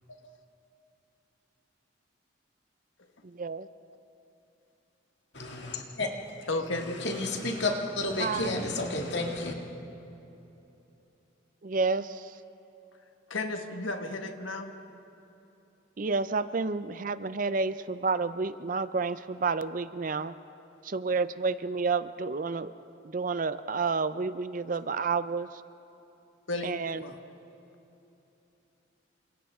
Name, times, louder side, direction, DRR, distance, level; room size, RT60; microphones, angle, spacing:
voice 1, 3.2-3.7 8.2-8.6 11.6-12.4 16.0-20.3 20.8-22.7 23.0-25.6 26.6-27.0, right 4 dB, 45° right, 14 dB, 0.5 m, -30 dB
voice 2, 5.3-6.1 6.7-9.6, left 2 dB, 60° left, 1 dB, 2.2 m, -31 dB
voice 3, 6.5-7.0 13.3-14.7 26.5-27.1, left 2 dB, 85° left, 5 dB, 1.5 m, -34 dB
29.0 x 26.0 x 3.6 m, 2.9 s
head